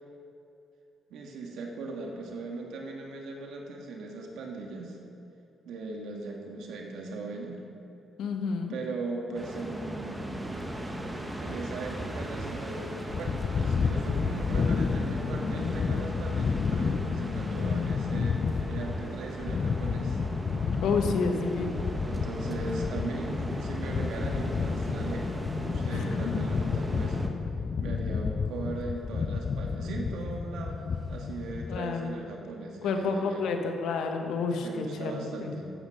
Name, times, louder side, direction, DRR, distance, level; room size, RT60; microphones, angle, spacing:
voice 1, 1.1-5.0 5.7-7.6 8.7-10.4 11.4-20.2 22.0-25.3 25.6-27.3 27.8-30.8 31.1-33.5 34.6-35.7, right 3 dB, 80° right, 1 dB, 1.7 m, -39 dB
voice 2, 8.2-8.8 20.8-21.9 25.9-26.4 31.7-32.2 32.8-35.5, left 4 dB, 80° left, 4 dB, 1.3 m, -30 dB
sound 1, 9.3-27.3, right 1 dB, 10° right, 1.3 m, -38 dB
sound 2, 13.1-31.8, left 5 dB, 45° left, 0.5 m, -31 dB
13.5 x 8.4 x 5.6 m, 2.7 s
cardioid pair, 90°, 0 cm